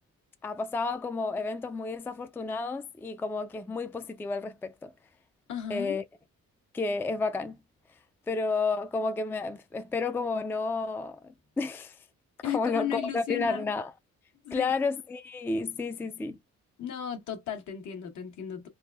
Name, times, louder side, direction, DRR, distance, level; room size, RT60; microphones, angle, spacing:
voice 1, 0.4-4.9 5.7-6.0 6.7-7.6 8.3-12.0 12.4-13.9 14.5-16.4, left 3 dB, 10° left, 0.3 m, -31 dB
voice 2, 5.5-6.0 12.4-13.6 14.4-14.7 16.8-18.7, left 9 dB, 70° left, 1.1 m, -35 dB
3.5 x 2.3 x 2.3 m
cardioid pair, 90°, 30 cm